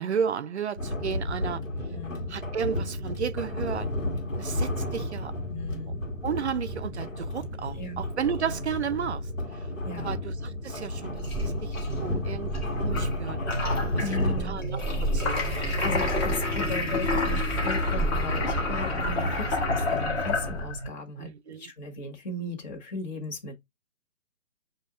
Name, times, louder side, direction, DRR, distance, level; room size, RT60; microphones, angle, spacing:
voice 1, 0.0-1.6 2.3-3.9 4.4-5.3 6.2-9.2 10.0-12.5 12.8-13.4 13.9-14.2 14.4-15.8 21.2-21.7, right 7 dB, 60° right, 0.5 m, -33 dB
sound 1, 0.8-20.7, left 1 dB, 85° left, 1.5 m, -32 dB
voice 2, 1.9-2.3 5.5-6.0 7.7-8.0 9.8-10.1 14.0-14.6 15.8-21.3 21.6-23.5, left 3 dB, 35° left, 1.6 m, -37 dB
sound 2, 11.1-20.9, left 1 dB, 20° left, 1.0 m, -29 dB
6.2 x 2.7 x 2.4 m
figure-of-eight pair, 135°, 38 cm